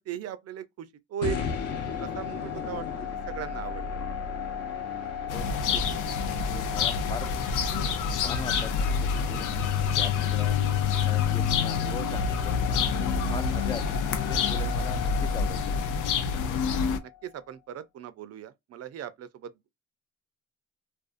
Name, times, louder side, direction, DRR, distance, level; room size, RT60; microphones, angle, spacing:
voice 1, 0.1-1.4 2.0-2.9 3.3-4.0 17.0-19.5, right 9 dB, 55° right, 0.5 m, -37 dB
sound 1, 1.2-17.4, left 7 dB, 55° left, 0.8 m, -36 dB
sound 2, 5.3-17.0, left 6 dB, 85° left, 0.5 m, -27 dB
voice 2, 5.3-6.0 6.4-7.3 8.2-9.7 9.9-10.6 11.1-15.9, left 4 dB, 15° left, 0.4 m, -40 dB
2.5 x 2.3 x 2.4 m
cardioid pair, 90°, 30 cm